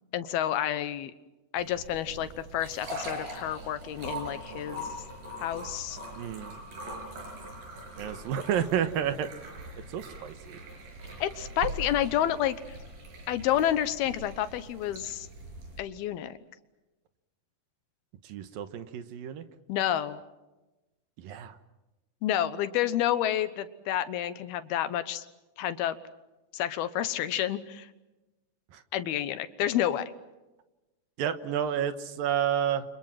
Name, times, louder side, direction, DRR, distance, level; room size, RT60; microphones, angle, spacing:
voice 1, 0.1-1.1 1.5-4.9 5.4-6.0 11.2-12.8 13.3-15.3 15.8-16.4 19.7-20.2 22.2-25.3 25.6-26.0 26.5-27.9 28.9-30.1, left 11 dB, 70° left, 12 dB, 2.8 m, -29 dB
sound 1, 1.6-15.8, right 1 dB, 50° right, 8.1 m, -41 dB
voice 2, 6.2-6.5 8.0-9.3 9.9-10.6 18.2-19.4 21.2-21.6 28.7-28.8 31.2-32.9, right 9 dB, 65° right, 10 dB, 2.6 m, -30 dB
30.0 x 26.5 x 5.9 m, 1.0 s
omnidirectional pair, 4.9 m